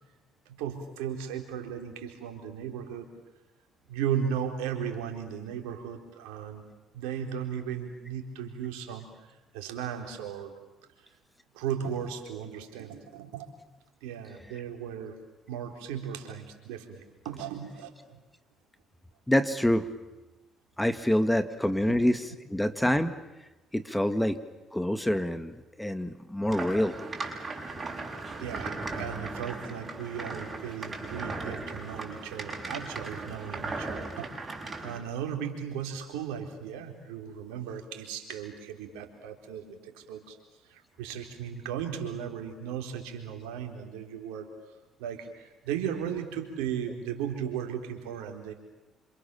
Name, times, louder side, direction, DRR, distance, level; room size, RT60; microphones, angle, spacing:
voice 1, 0.5-3.1 3.9-6.7 6.9-10.5 11.5-13.5 14.0-15.2 15.5-17.9 21.9-22.0 27.4-27.7 28.4-40.4 40.6-44.5 45.0-48.5, right 8 dB, 85° right, 4 dB, 4.0 m, -36 dB
voice 2, 19.3-19.9 20.8-22.2 22.5-23.1 23.7-24.4 24.7-26.9, left 1 dB, 5° left, 10 dB, 2.0 m, -26 dB
sound 1, 26.5-35.0, right 3 dB, 35° right, 7.1 m, -37 dB
28.0 x 27.0 x 7.1 m, 1.0 s
supercardioid pair, 65°, 0 cm